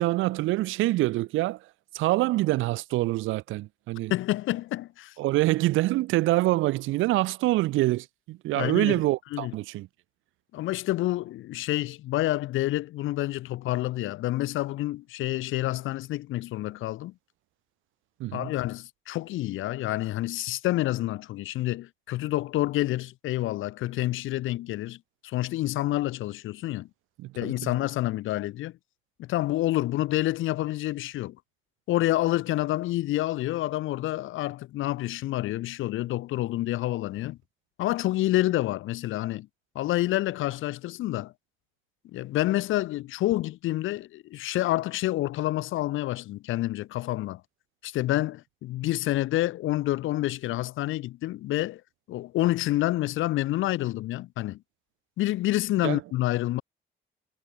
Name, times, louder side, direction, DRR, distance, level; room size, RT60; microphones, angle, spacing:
voice 1, 0.0-1.7 1.9-4.1 5.2-9.9 18.2-18.5 27.2-27.7 55.8-56.0, right 18 dB, 80° right, 0.4 m, -25 dB
voice 2, 4.1-5.1 8.5-9.0 9.3-9.5 10.5-17.1 18.3-25.0 25.2-26.9 27.3-28.7 29.2-31.4 31.9-37.4 37.8-39.5 39.7-41.3 42.1-47.4 47.8-51.8 52.1-54.6 55.2-56.6, left 16 dB, 80° left, 0.8 m, -28 dB
cardioid pair, 90°, 20 cm